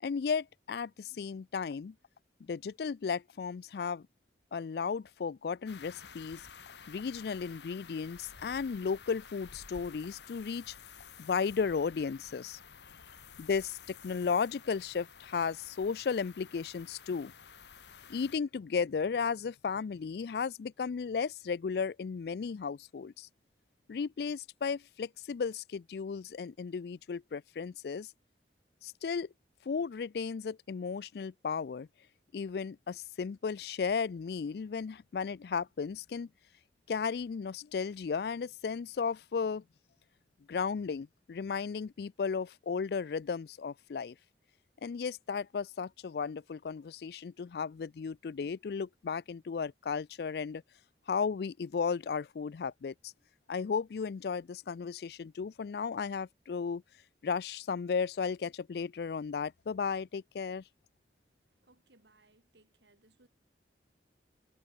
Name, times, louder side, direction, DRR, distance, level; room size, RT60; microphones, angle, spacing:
voice 1, 0.0-1.9 2.4-4.1 4.5-6.4 6.9-10.7 11.2-12.6 13.4-17.3 18.1-23.3 23.9-28.1 28.8-29.3 29.7-31.9 32.3-36.3 36.9-39.6 40.5-44.2 44.8-50.6 51.1-53.1 53.5-56.8 57.2-60.6, left 5 dB, 60° left, 0.4 m, -34 dB
sound 1, 5.7-18.4, left 6 dB, 75° left, 1.4 m, -52 dB
voice 2, 61.4-63.3, right 2 dB, 75° right, 3.2 m, -66 dB
head